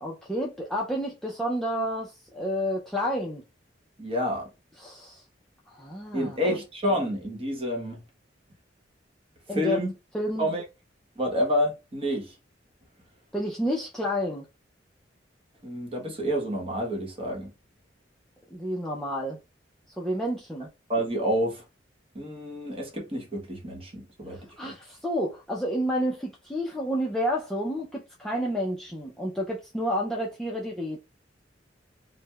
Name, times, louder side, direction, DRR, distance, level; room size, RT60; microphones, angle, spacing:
voice 1, 0.0-3.4 4.8-5.2 5.7-6.6 9.5-9.8 10.1-10.5 13.3-14.5 18.5-19.4 20.0-20.7 24.3-31.0, equal, ahead, 0.4 m, -30 dB
voice 2, 4.0-4.5 6.1-8.0 9.5-9.9 10.4-10.6 11.2-12.3 15.6-17.5 20.9-21.6 22.1-24.7, equal, 30° right, 0.9 m, -29 dB
4.5 x 2.1 x 2.2 m
head